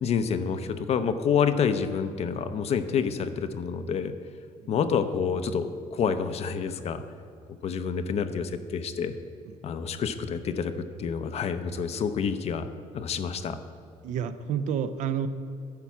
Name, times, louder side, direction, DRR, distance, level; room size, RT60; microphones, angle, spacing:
voice 1, 0.0-4.1 4.7-7.0 7.6-9.1 9.6-10.7 11.0-13.6, left 6 dB, 50° left, 10 dB, 0.6 m, -28 dB
voice 2, 14.0-15.3, right 8 dB, 65° right, 11 dB, 0.6 m, -29 dB
10.5 x 4.5 x 7.2 m, 2.5 s
cardioid pair, 105°, 14 cm